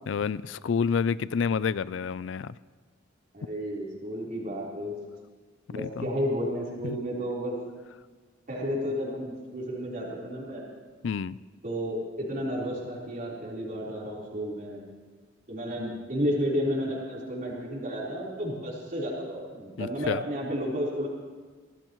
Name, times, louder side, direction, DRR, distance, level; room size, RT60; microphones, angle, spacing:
voice 1, 0.1-2.5 5.8-6.1 6.8-7.0 11.0-11.4 19.8-20.2, left 6 dB, 65° left, 18 dB, 0.4 m, -29 dB
voice 2, 3.3-4.9 5.7-7.6 8.5-10.6 11.6-14.8 15.5-21.1, equal, 45° right, -5 dB, 4.0 m, -32 dB
24.0 x 17.5 x 3.1 m, 1.5 s
head